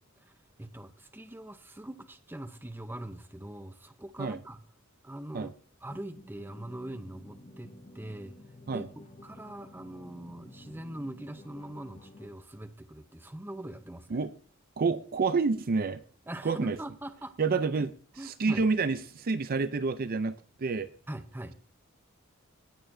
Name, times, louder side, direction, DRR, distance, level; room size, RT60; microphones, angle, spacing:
voice 1, 0.6-4.6 5.0-5.5 5.8-8.4 8.7-8.9 9.2-14.2 16.3-17.4 17.7-17.9 18.2-18.7 21.1-21.5, right 1 dB, 10° right, 8 dB, 0.7 m, -42 dB
sound 1, 5.8-12.3, left 1 dB, 30° left, 1.0 m, -52 dB
voice 2, 14.8-16.0 16.4-16.8 17.4-17.9 18.2-20.9, right 4 dB, 45° right, 12 dB, 0.5 m, -28 dB
18.0 x 6.8 x 2.7 m, 0.44 s
head